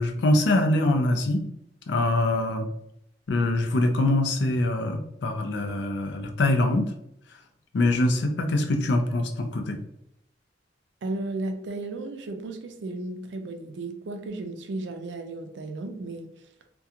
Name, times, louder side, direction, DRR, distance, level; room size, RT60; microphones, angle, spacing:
voice 1, 0.0-1.5 1.9-2.7 3.3-6.9 7.7-9.8, left 2 dB, 80° left, 5 dB, 0.4 m, -24 dB
voice 2, 11.0-16.3, right 2 dB, 80° right, 7 dB, 0.4 m, -34 dB
2.4 x 2.2 x 2.8 m, 0.77 s
head